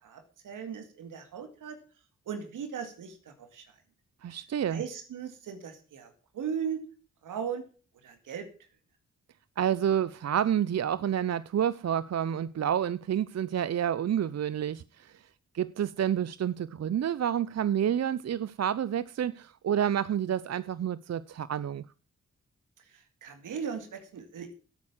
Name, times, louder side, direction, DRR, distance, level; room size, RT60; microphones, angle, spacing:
voice 1, 0.0-1.8 2.3-3.7 4.7-6.8 7.2-7.6 8.0-8.5 22.9-24.5, right 7 dB, 85° right, 2.3 m, -38 dB
voice 2, 4.2-4.8 9.6-15.2 15.5-21.8, right 9 dB, 55° right, 0.6 m, -29 dB
11.5 x 8.6 x 7.3 m
supercardioid pair, 45°, 30 cm